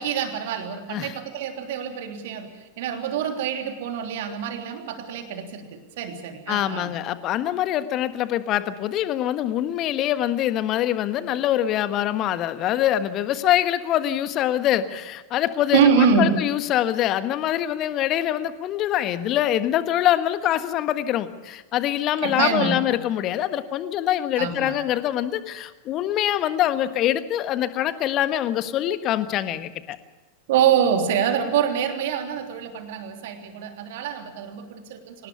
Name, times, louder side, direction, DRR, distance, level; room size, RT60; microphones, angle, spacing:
voice 1, 0.0-6.9 15.7-16.3 22.2-22.9 24.4-24.8 30.5-35.3, right 8 dB, 55° right, 5 dB, 3.3 m, -25 dB
voice 2, 6.5-30.0, left 12 dB, 35° left, 12 dB, 1.4 m, -24 dB
25.0 x 19.0 x 7.0 m, 1.2 s
figure-of-eight pair, 90°, 0 cm